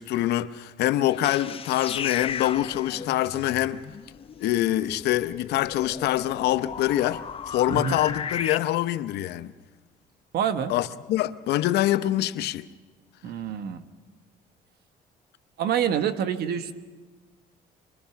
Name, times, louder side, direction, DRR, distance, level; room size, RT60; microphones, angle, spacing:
voice 1, 0.0-3.8 4.4-9.5 10.7-12.7, left 14 dB, 75° left, 0.7 m, -25 dB
sound 1, 1.1-8.6, left 7 dB, 35° left, 0.6 m, -36 dB
voice 2, 7.7-8.0 10.3-10.7 13.2-13.8 15.6-16.7, right 8 dB, 70° right, 1.2 m, -26 dB
26.5 x 21.0 x 5.8 m
cardioid pair, 110°, 17 cm